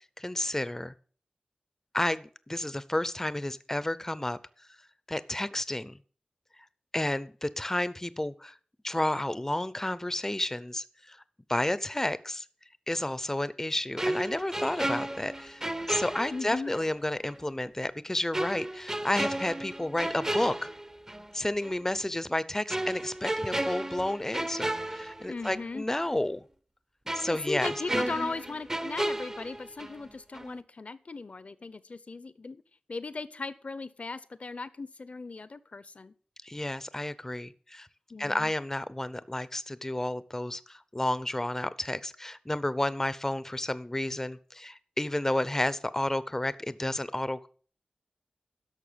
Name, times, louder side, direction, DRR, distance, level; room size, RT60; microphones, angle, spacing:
voice 1, 0.2-0.9 1.9-4.4 5.1-5.9 6.9-8.5 8.8-11.2 11.5-12.4 12.9-20.7 21.3-26.4 27.1-27.7 36.4-37.9 38.2-47.5, left 1 dB, 15° left, 16 dB, 0.6 m, -31 dB
sound 1, 14.0-16.9 17.2-17.4 18.3-21.3 21.6-21.8 22.7-25.7 26.0-26.1 27.1-30.1 30.3-30.6, right 1 dB, 20° right, 0.7 m, -33 dB
voice 2, 16.3-16.8 25.3-25.9 27.3-32.6 32.9-36.1 38.1-38.5, left 3 dB, 55° left, 16 dB, 0.7 m, -38 dB
11.5 x 6.5 x 6.8 m, 0.42 s
wide cardioid pair, 75°, 3 cm